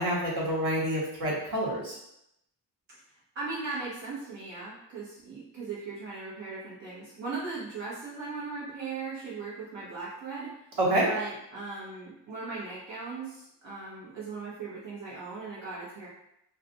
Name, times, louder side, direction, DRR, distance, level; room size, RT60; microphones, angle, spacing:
voice 1, 0.0-2.0 10.8-11.1, right 1 dB, 65° right, -5 dB, 1.2 m, -27 dB
voice 2, 3.3-10.5 11.1-16.1, right 4 dB, 80° right, -8 dB, 1.0 m, -38 dB
2.4 x 2.3 x 3.9 m, 0.80 s
wide cardioid pair, 130°, 44 cm